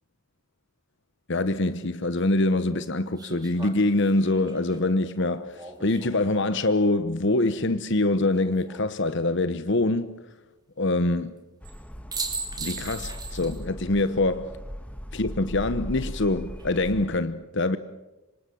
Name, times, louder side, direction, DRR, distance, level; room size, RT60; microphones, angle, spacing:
voice 1, 1.3-10.2 10.8-11.3 12.6-14.5 15.1-17.8, left 2 dB, 55° left, 1.0 m, -24 dB
sound 1, 1.7-1.8 3.2-6.4 8.2-8.9 11.6-11.8 12.1-13.6 14.0-14.1 16.4-16.9, right 4 dB, 20° right, 3.1 m, -38 dB
sound 2, 11.6-17.2, equal, 5° left, 1.1 m, -38 dB
26.5 x 25.5 x 7.0 m
head